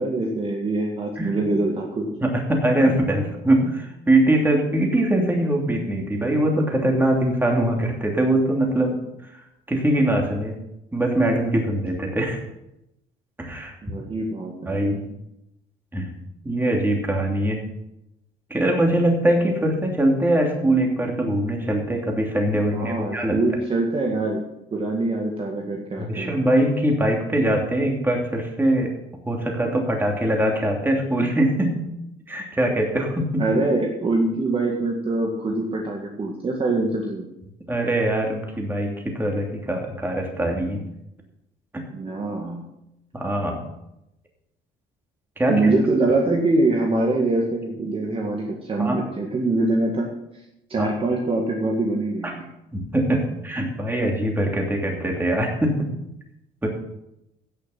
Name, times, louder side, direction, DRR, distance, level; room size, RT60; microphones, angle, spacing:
voice 1, 0.0-2.1 13.8-15.0 22.7-24.4 24.7-26.4 33.4-37.3 41.9-42.7 45.5-50.1 50.7-52.5, right 2 dB, 35° right, 0 dB, 1.9 m, -24 dB
voice 2, 2.2-9.0 9.7-10.5 10.9-12.4 13.4-13.7 14.7-15.0 15.9-16.2 16.4-17.6 18.5-23.4 26.0-28.9 29.3-31.8 32.3-33.4 37.7-40.8 41.7-41.8 43.1-43.6 45.4-45.5 48.8-49.0 50.8-50.9 52.7-55.9 56.6-56.7, right 1 dB, 10° right, 1 dB, 2.9 m, -22 dB
16.0 x 6.7 x 5.9 m, 0.86 s
cardioid pair, 110°, 17 cm